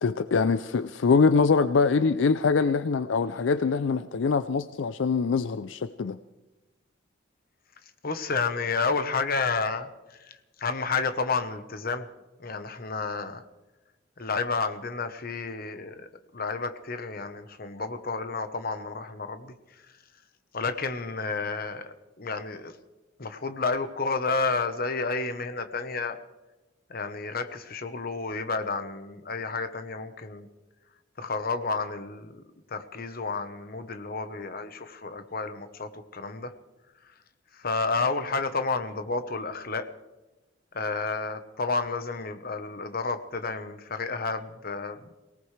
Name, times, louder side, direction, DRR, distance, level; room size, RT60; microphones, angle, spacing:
voice 1, 0.0-6.2, left 4 dB, 75° left, 13 dB, 0.4 m, -24 dB
voice 2, 8.0-9.9 10.2-12.1 12.4-13.4 14.2-19.5 20.5-22.7 23.2-26.2 26.9-30.5 31.2-32.4 32.7-36.5 37.5-39.9 40.7-45.0, left 4 dB, 50° left, 9 dB, 1.1 m, -31 dB
24.0 x 18.0 x 3.3 m, 1.1 s
head